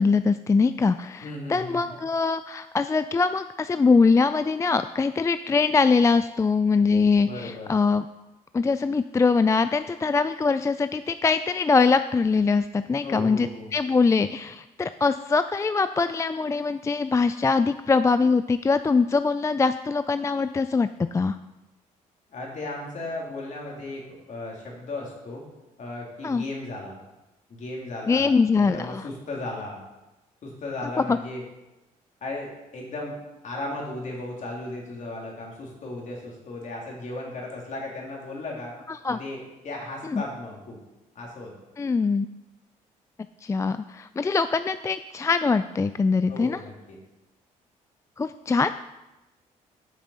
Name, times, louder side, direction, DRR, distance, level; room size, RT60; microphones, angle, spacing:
voice 1, 0.0-8.1 8.5-21.4 26.2-26.4 28.1-29.0 31.0-31.2 39.0-39.2 40.1-40.2 41.8-42.3 43.4-46.6 48.2-48.7, left 4 dB, 20° left, 12 dB, 0.3 m, -23 dB
voice 2, 1.2-2.0 7.2-7.7 13.0-13.7 22.3-25.4 25.8-27.0 27.5-28.3 28.6-29.8 30.4-31.4 32.2-33.2 33.4-38.8 39.1-40.8 41.1-41.5 46.3-47.0, left 2 dB, 55° left, -1 dB, 2.9 m, -36 dB
8.1 x 6.0 x 5.6 m, 1.0 s
supercardioid pair, 70°, 15 cm